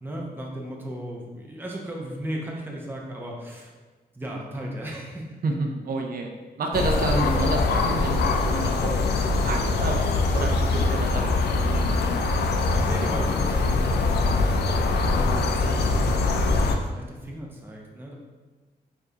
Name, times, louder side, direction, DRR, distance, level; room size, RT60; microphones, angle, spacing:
voice 1, 0.0-3.7 4.1-5.4 12.7-18.2, equal, 15° right, -2 dB, 0.7 m, -36 dB
voice 2, 5.4-6.3 6.6-10.0 10.3-12.3 12.5-12.7, right 2 dB, 65° right, 2 dB, 0.5 m, -30 dB
sound 1, 6.7-16.8, left 3 dB, 85° left, 0.4 m, -23 dB
4.6 x 2.6 x 2.8 m, 1.3 s
cardioid pair, 85°, 17 cm